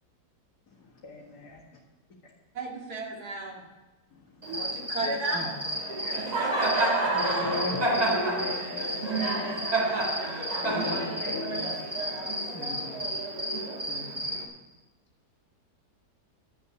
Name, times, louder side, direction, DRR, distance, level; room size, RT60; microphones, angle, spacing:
voice 1, 0.7-1.6 2.2-2.3 3.0-3.1 4.1-4.7 6.0-6.7 7.1-12.3, left 3 dB, 70° left, -6 dB, 2.5 m, -38 dB
voice 2, 2.5-3.6 4.4-5.5 7.0-7.1, right 2 dB, 65° right, 0 dB, 2.5 m, -33 dB
Cricket, 4.4-14.4, right 2 dB, 25° right, 1.6 m, -29 dB
voice 3, 12.5-13.2 13.9-14.4, equal, 10° left, 0 dB, 0.8 m, -43 dB
12.5 x 6.8 x 9.4 m, 1.1 s
omnidirectional pair, 1.8 m